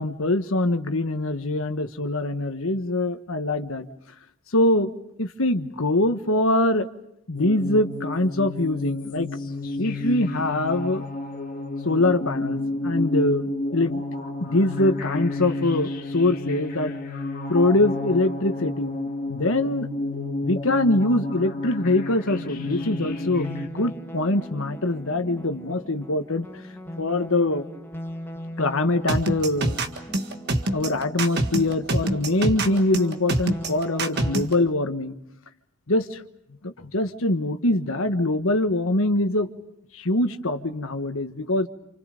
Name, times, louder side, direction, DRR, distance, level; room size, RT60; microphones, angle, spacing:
voice 1, 0.0-3.9 4.5-6.9 7.3-9.3 9.8-11.1 11.8-14.0 14.4-17.0 17.5-19.0 19.3-19.9 20.4-26.5 27.0-27.6 28.6-29.8 30.7-35.1 35.9-36.2 36.6-39.5 39.9-41.7, left 2 dB, 65° left, 8 dB, 1.4 m, -23 dB
sound 1, 7.3-23.7, left 2 dB, 40° left, 2.1 m, -30 dB
sound 2, 22.4-34.4, equal, 10° left, 1.6 m, -39 dB
sound 3, 29.1-34.5, right 1 dB, 45° right, 1.8 m, -25 dB
29.5 x 28.0 x 5.2 m, 0.76 s
head